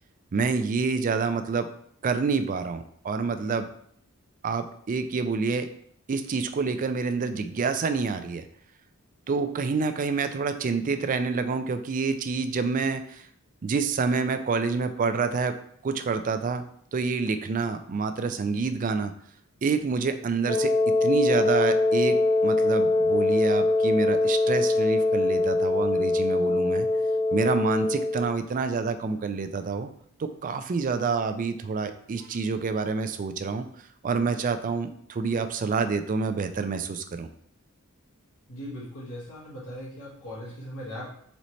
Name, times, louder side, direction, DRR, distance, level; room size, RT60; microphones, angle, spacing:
voice 1, 0.3-1.7 2.0-3.7 4.4-5.7 6.1-8.5 9.3-13.2 13.6-15.6 15.8-16.6 16.9-19.1 19.6-26.9 27.3-29.9 30.2-33.7 34.0-37.3, right 4 dB, 35° right, 9 dB, 0.3 m, -27 dB
Wind instrument woodwind instrument, 20.5-28.3, left 2 dB, 20° left, 0.8 m, -23 dB
voice 2, 38.5-41.1, equal, 90° left, -6 dB, 1.5 m, -39 dB
4.1 x 4.1 x 3.1 m, 0.64 s
head